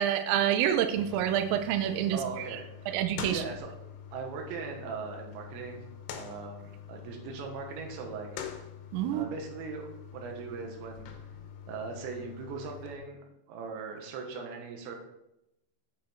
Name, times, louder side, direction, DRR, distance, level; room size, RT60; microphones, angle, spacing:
voice 1, 0.0-2.6 2.9-3.4 8.9-9.3, right 10 dB, 90° right, 9 dB, 3.4 m, -28 dB
sound 1, 0.9-13.0, left 8 dB, 75° left, 3.1 m, -45 dB
voice 2, 2.1-2.6 3.3-3.7 4.1-5.8 6.1-8.3 9.1-11.1 11.7-13.2 13.5-15.0, right 5 dB, 70° right, 2 dB, 3.3 m, -39 dB
8.4 x 7.4 x 4.4 m, 0.87 s
omnidirectional pair, 5.8 m